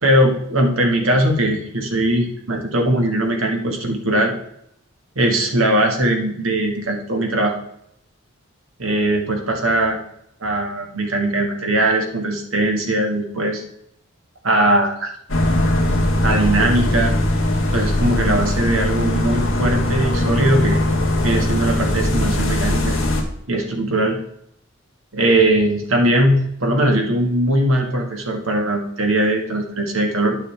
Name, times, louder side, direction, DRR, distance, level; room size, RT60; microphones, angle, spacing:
voice 1, 0.0-4.3 5.1-7.6 8.8-10.0 10.4-13.6 14.4-15.1 16.2-17.2 17.7-20.8 21.2-23.0 23.5-24.2 25.1-30.4, right 1 dB, 70° right, 2 dB, 1.7 m, -20 dB
sound 1, 15.3-23.2, left 1 dB, 65° left, 1.6 m, -20 dB
10.5 x 6.4 x 3.3 m, 0.72 s
head